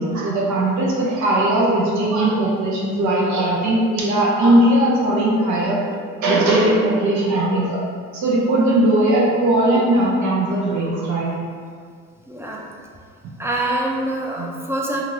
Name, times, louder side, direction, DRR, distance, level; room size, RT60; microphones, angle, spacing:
voice 1, 0.0-5.9 6.2-7.8 8.1-11.4 14.4-14.5, right 1 dB, 70° right, -4 dB, 0.8 m, -19 dB
voice 2, 12.3-12.6 13.4-15.0, right 1 dB, 10° right, -2 dB, 0.4 m, -25 dB
3.0 x 2.6 x 2.6 m, 2.1 s
cardioid pair, 90°, 30 cm